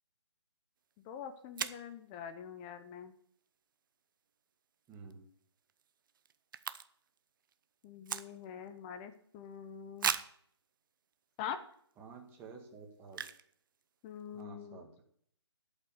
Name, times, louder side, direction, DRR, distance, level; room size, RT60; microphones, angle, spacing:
sound 1, 0.9-1.0 1.6-1.9 4.9-5.1 5.4-5.5 5.7-7.2 7.4-8.7 9.1-9.2 10.0-10.4 11.1-11.2 11.7-11.9 13.1-13.5 13.8-13.9 14.1-14.4, right 8 dB, 45° right, 0.6 m, -38 dB
voice 1, 1.0-3.1 7.8-10.1 11.4-11.6 14.0-14.8, left 8 dB, 20° left, 10 dB, 0.7 m, -44 dB
voice 2, 4.9-5.2 12.0-13.2 14.3-14.9, right 5 dB, 15° right, 2 dB, 1.8 m, -51 dB
11.0 x 5.7 x 8.1 m, 0.63 s
figure-of-eight pair, 150°, 15 cm